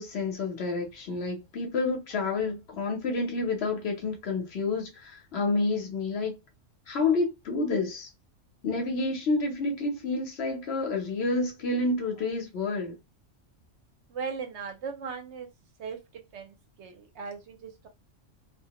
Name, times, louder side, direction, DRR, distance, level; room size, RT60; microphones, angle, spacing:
voice 1, 0.0-6.3 6.9-8.1 8.6-12.9, left 3 dB, 60° left, 1.0 m, -29 dB
voice 2, 14.1-15.5 15.8-16.0 16.3-16.5 16.8-17.9, right 5 dB, 70° right, 0.9 m, -37 dB
2.4 x 2.1 x 2.8 m
omnidirectional pair, 1.3 m